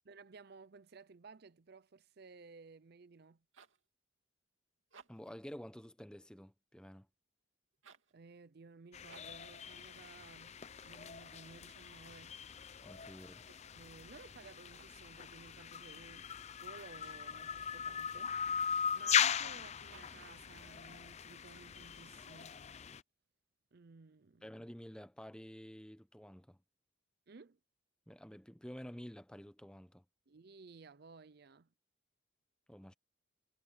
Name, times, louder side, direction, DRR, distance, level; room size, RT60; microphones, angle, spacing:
voice 1, 0.0-3.4 8.1-12.3 13.7-16.3 16.6-18.4 18.6-22.6 23.7-24.5 27.3-27.6 30.3-31.7, right 4 dB, 55° right, 0.6 m, -57 dB
sound 1, 3.3-3.9 4.8-5.4 7.7-8.2 9.0-9.5 14.5-15.1 16.9-17.4 19.8-20.4, right 5 dB, 85° right, 2.4 m, -61 dB
voice 2, 5.1-7.1 12.8-13.5 24.4-26.6 28.1-30.0 32.7-32.9, equal, 5° left, 0.8 m, -50 dB
sound 2, 8.9-23.0, left 7 dB, 35° left, 0.5 m, -39 dB
head